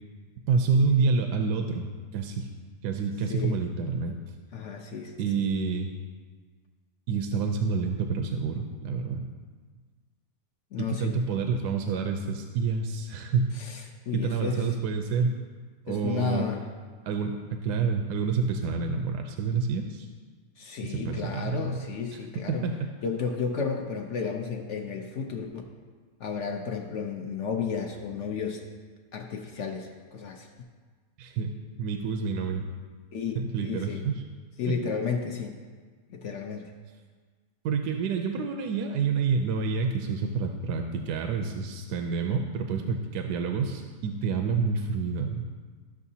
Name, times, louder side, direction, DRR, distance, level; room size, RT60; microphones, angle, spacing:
voice 1, 0.5-2.5 2.8-4.2 5.2-5.9 7.1-9.3 10.8-13.5 14.1-15.4 15.9-16.5 17.0-20.1 20.8-21.8 22.6-22.7 31.2-31.5 31.8-32.6 33.4-34.2 34.7-34.8 37.6-45.4, right 5 dB, 80° right, 4 dB, 1.2 m, -28 dB
voice 2, 4.5-5.4 10.7-11.2 13.5-14.6 15.9-16.6 20.6-22.7 23.0-25.5 26.2-28.6 29.1-30.5 33.1-33.4 33.6-34.0 34.6-35.5 36.1-36.7, left 5 dB, 60° left, 3 dB, 0.8 m, -32 dB
13.0 x 6.4 x 2.8 m, 1.5 s
omnidirectional pair, 1.8 m